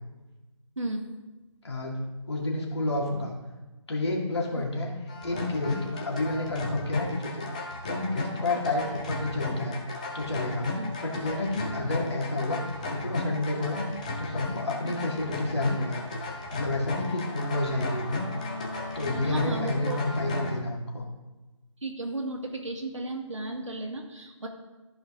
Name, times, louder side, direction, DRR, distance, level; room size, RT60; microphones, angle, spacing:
voice 1, 0.8-1.1 10.8-10.9 14.8-15.0 19.2-20.0 21.8-24.5, right 2 dB, 65° right, 1 dB, 2.0 m, -34 dB
voice 2, 1.6-3.4 3.9-4.9 5.2-7.4 7.9-9.8 10.1-16.0 16.5-18.2 18.9-21.0, left 2 dB, 55° left, -2 dB, 2.2 m, -30 dB
sound 1, 5.1-20.6, left 2 dB, 15° left, 0.7 m, -34 dB
13.5 x 5.0 x 3.7 m, 1.1 s
figure-of-eight pair, 160°, 17 cm